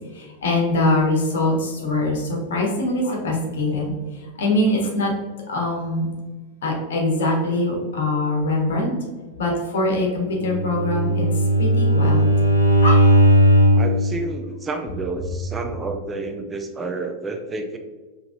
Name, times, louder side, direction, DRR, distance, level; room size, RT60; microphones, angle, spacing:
voice 1, 0.1-3.9 4.4-5.1 5.5-6.1 6.6-8.9 9.4-11.2 11.6-12.3 12.8-13.0, left 2 dB, 60° left, -1 dB, 1.2 m, -23 dB
Bowed string instrument, 10.3-14.0, equal, 80° left, 0.9 m, -16 dB
voice 2, 13.7-17.8, right 3 dB, 15° right, 5 dB, 0.4 m, -30 dB
5.8 x 3.1 x 2.5 m, 1.4 s
figure-of-eight pair, 90°, 0 cm